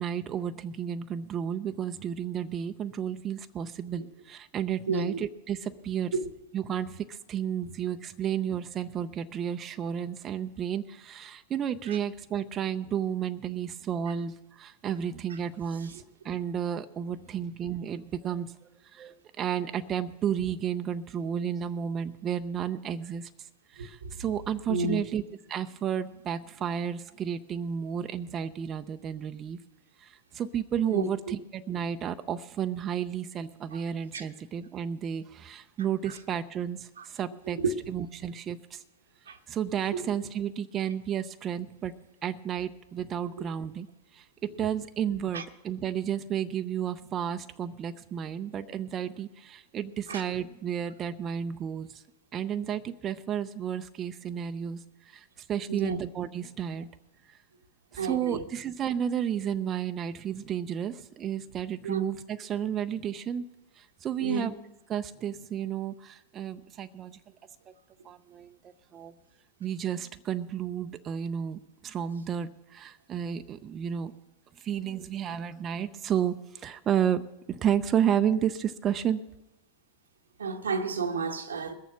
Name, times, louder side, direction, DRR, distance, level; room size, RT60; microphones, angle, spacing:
voice 1, 0.0-6.1 6.5-25.2 25.5-29.6 30.0-37.6 37.9-38.8 39.5-41.9 42.2-43.9 44.1-52.0 52.3-56.9 57.3-57.4 57.9-63.5 63.7-64.6 64.9-67.2 67.7-67.8 68.0-69.1 69.6-74.1 74.6-77.2 77.5-79.2, right 9 dB, 35° right, 0.6 m, -32 dB
voice 2, 4.9-5.2 6.1-6.3 11.9-12.0 15.9-16.0 23.8-24.1 24.7-25.0 30.9-31.1 33.7-33.8 34.1-34.2 36.1-36.2 37.0-37.1 37.5-37.7 39.3-39.4 39.9-40.1 45.3-45.4 50.1-50.2 55.7-56.0 58.0-58.5 61.8-62.0 64.2-64.5 80.4-81.7, right 4 dB, 90° right, 1.1 m, -31 dB
20.5 x 7.1 x 6.1 m
hypercardioid pair, 100°, 0 cm